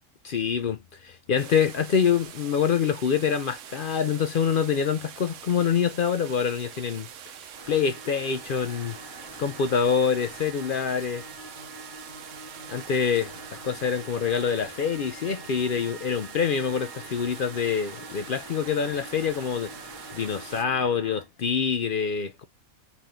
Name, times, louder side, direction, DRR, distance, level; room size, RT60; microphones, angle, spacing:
voice 1, 0.2-7.1 7.4-9.0 9.4-11.2 12.7-19.7 20.1-22.4, left 7 dB, 60° left, 0.5 m, -26 dB
sound 1, 1.4-20.6, right 9 dB, 70° right, 1.0 m, -45 dB
sound 2, 7.5-21.3, right 1 dB, 15° left, 1.8 m, -45 dB
4.4 x 4.3 x 5.1 m
omnidirectional pair, 1.4 m